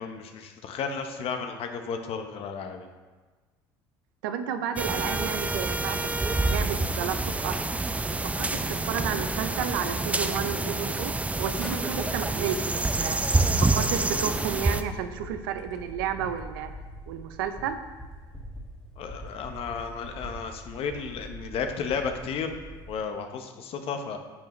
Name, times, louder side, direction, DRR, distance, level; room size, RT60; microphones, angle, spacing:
voice 1, 0.0-2.9 19.0-22.5 22.9-24.2, left 6 dB, 60° left, 5 dB, 1.0 m, -33 dB
voice 2, 4.2-7.6 8.4-16.7 17.1-17.8, right 8 dB, 85° right, 8 dB, 0.6 m, -32 dB
sound 1, 4.8-14.8, right 2 dB, 10° right, 0.5 m, -27 dB
sound 2, 11.6-23.0, equal, 10° left, 1.9 m, -44 dB
10.0 x 7.0 x 3.2 m, 1.3 s
supercardioid pair, 80°, 11 cm